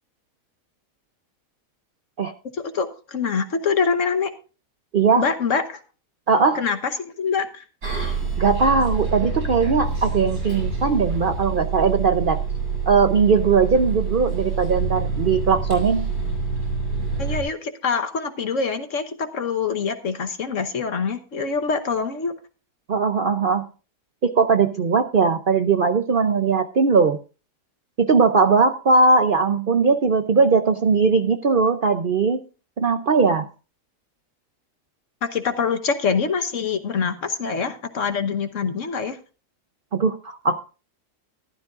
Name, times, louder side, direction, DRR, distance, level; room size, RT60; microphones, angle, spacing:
voice 1, 2.5-4.3 5.2-5.8 6.5-7.6 17.2-22.3 35.2-39.2, left 5 dB, 55° left, 9 dB, 1.3 m, -25 dB
voice 2, 4.9-5.3 6.3-6.6 8.4-12.4 12.9-16.1 22.9-23.7 24.2-27.2 28.0-32.4 32.8-33.5 39.9-40.6, right 4 dB, 55° right, 8 dB, 0.6 m, -19 dB
Bus, 7.8-17.4, right 5 dB, 70° right, 6.1 m, -26 dB
14.5 x 12.5 x 2.5 m, 0.34 s
omnidirectional pair, 1.8 m